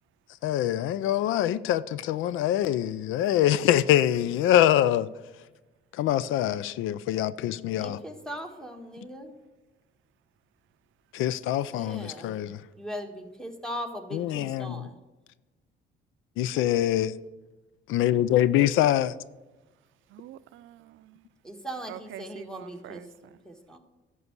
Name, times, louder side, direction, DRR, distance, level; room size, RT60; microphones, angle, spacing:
voice 1, 0.4-5.1 6.0-8.0 11.1-12.6 14.1-14.9 16.4-17.1 17.9-19.1, left 12 dB, 85° left, 0.4 m, -24 dB
voice 2, 7.6-9.4 11.7-15.0 21.4-23.0 23.4-23.8, equal, 5° left, 1.5 m, -39 dB
voice 3, 20.1-21.2 21.9-23.4, right 13 dB, 80° right, 0.5 m, -46 dB
11.0 x 4.7 x 8.1 m
cardioid pair, 90°, 20 cm